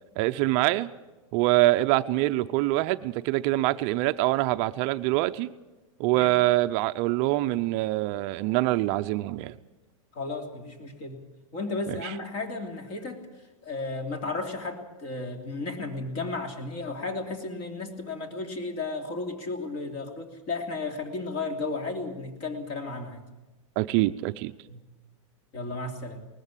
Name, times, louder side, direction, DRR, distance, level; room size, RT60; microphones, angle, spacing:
voice 1, 0.2-0.9 1.3-5.5 6.0-9.5 12.0-12.1 23.8-24.5, right 17 dB, 40° right, 10 dB, 0.6 m, -25 dB
voice 2, 10.1-11.2 11.5-13.3 13.6-23.2 24.7-24.8 25.5-26.2, left 3 dB, 35° left, 5 dB, 3.1 m, -34 dB
20.0 x 14.0 x 9.9 m, 1.2 s
supercardioid pair, 150°, 17 cm